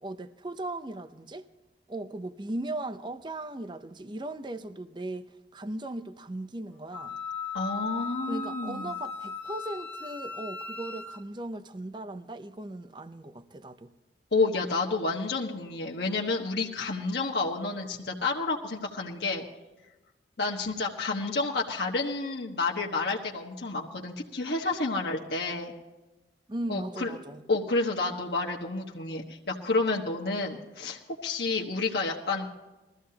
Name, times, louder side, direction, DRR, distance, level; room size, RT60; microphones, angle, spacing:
voice 1, 0.0-1.4 1.9-7.2 8.3-13.9 26.5-27.4, right 1 dB, 25° right, 0.6 m, -38 dB
Wind instrument woodwind instrument, 6.9-11.2, left 5 dB, 10° left, 1.4 m, -37 dB
voice 2, 7.5-8.9 14.3-19.4 20.4-25.7 26.7-27.1 27.5-32.5, left 3 dB, 70° left, 1.3 m, -30 dB
21.5 x 14.5 x 2.9 m
head